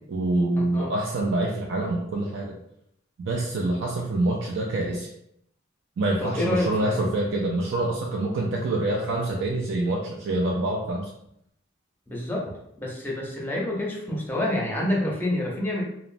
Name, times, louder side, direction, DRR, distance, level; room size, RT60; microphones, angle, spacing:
voice 1, 0.1-2.6 3.2-5.1 6.0-11.1, right 2 dB, 70° right, -1 dB, 0.4 m, -26 dB
voice 2, 6.2-7.1 12.1-15.8, left 1 dB, 10° left, -3 dB, 0.6 m, -28 dB
3.0 x 2.0 x 2.5 m, 0.76 s
head